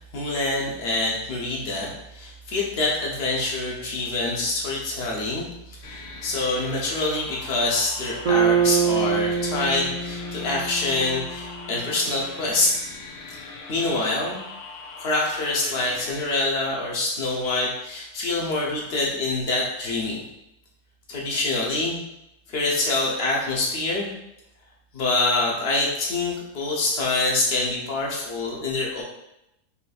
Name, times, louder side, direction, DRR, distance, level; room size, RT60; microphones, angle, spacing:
voice 1, 0.1-5.5 5.8-12.7 13.7-14.4 15.0-20.2 21.1-22.0 22.5-24.1 24.9-29.0, left 2 dB, 50° left, -3 dB, 0.9 m, -25 dB
sound 1, 5.8-16.2, left 3 dB, 75° left, 1.1 m, -40 dB
Bass guitar, 8.2-12.3, right 7 dB, 70° right, 0.4 m, -25 dB
4.0 x 2.6 x 2.4 m, 0.86 s
omnidirectional pair, 1.6 m